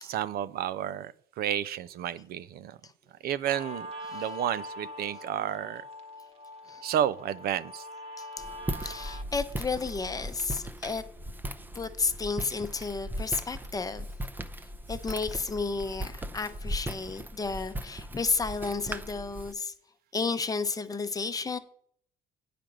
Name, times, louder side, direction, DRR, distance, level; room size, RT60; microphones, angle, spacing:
voice 1, 0.0-2.8 3.2-3.9 4.1-5.8 6.8-7.8, right 10 dB, 65° right, 0.5 m, -31 dB
Guitar, 3.5-10.4, left 1 dB, 40° right, 1.3 m, -43 dB
Walk footsteps, 8.4-19.5, right 1 dB, 10° right, 0.6 m, -38 dB
voice 2, 8.8-11.0 11.7-14.0 14.9-19.7 20.1-21.6, left 4 dB, 20° left, 0.7 m, -32 dB
9.1 x 5.1 x 6.1 m
cardioid pair, 110°, 17 cm